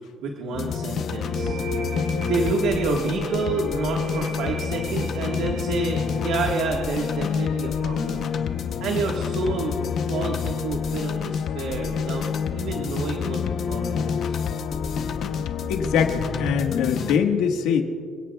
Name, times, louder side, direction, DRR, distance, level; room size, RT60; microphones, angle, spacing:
voice 1, 0.2-1.6 2.2-8.3 8.8-12.2 12.5-13.4 13.7-14.4, right 4 dB, 70° right, 1 dB, 1.6 m, -29 dB
sound 1, 0.5-17.2, left 6 dB, 45° left, 0.8 m, -28 dB
sound 2, 1.2-8.6, right 5 dB, 45° right, 1.9 m, -37 dB
voice 2, 15.7-17.8, left 7 dB, 85° left, 4 dB, 1.5 m, -23 dB
28.5 x 17.0 x 2.3 m, 2.3 s
cardioid pair, 180°, 0 cm